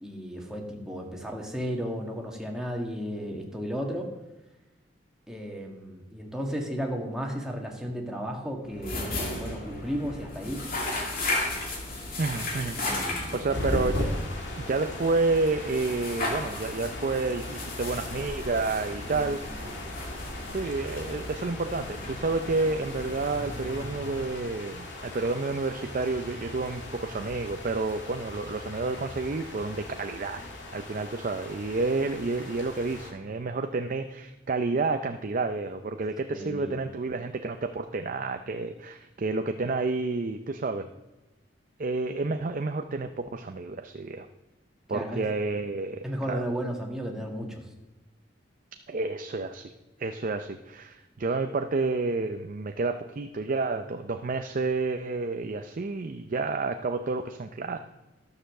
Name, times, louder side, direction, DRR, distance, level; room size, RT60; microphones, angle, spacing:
voice 1, 0.0-4.1 5.3-10.6 12.8-13.7 19.1-19.3 19.6-19.7 36.3-36.7 44.9-45.2 46.0-47.6, equal, 5° right, 0 dB, 1.7 m, -34 dB
sound 1, 8.7-24.8, left 2 dB, 50° left, 2.6 m, -36 dB
voice 2, 12.2-12.8 13.3-14.2 14.6-19.7 20.5-30.4 30.7-40.9 41.8-44.3 44.9-46.4 48.9-49.7 50.0-57.8, right 3 dB, 45° right, 7 dB, 0.5 m, -30 dB
sound 2, 13.5-33.1, left 1 dB, 70° left, 2.5 m, -38 dB
12.5 x 6.8 x 6.5 m, 1.0 s
head